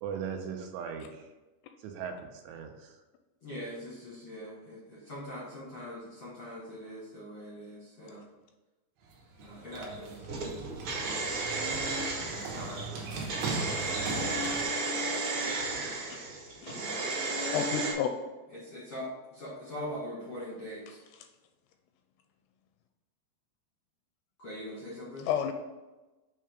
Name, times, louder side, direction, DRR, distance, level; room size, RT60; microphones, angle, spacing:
voice 1, 0.0-1.2 1.8-2.9, right 7 dB, 90° right, 4 dB, 3.0 m, -38 dB
voice 2, 3.4-8.2 9.4-10.3 12.2-14.0 18.5-21.0 24.4-25.3, equal, 65° left, -7 dB, 1.4 m, -42 dB
sound 1, 9.0-14.6, right 4 dB, 75° right, 2.9 m, -39 dB
sound 2, 10.3-17.9, right 3 dB, 50° right, 2.8 m, -33 dB
voice 3, 17.5-18.1 20.9-21.3 25.2-25.5, left 9 dB, 85° left, 6 dB, 2.4 m, -33 dB
7.7 x 3.3 x 5.0 m, 1.1 s
omnidirectional pair, 5.0 m